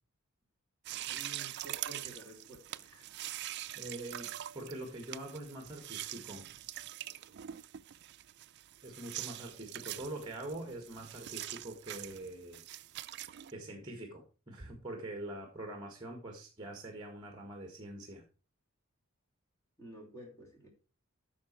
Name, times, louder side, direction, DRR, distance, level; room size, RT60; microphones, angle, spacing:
sound 1, 0.8-13.5, right 13 dB, 50° right, 0.4 m, -44 dB
voice 1, 1.1-3.0 19.8-20.7, right 1 dB, 15° left, 3.0 m, -51 dB
voice 2, 3.7-4.3 4.5-6.5 8.8-12.6 13.5-18.3, right 1 dB, 20° right, 1.6 m, -44 dB
9.3 x 6.0 x 4.4 m
head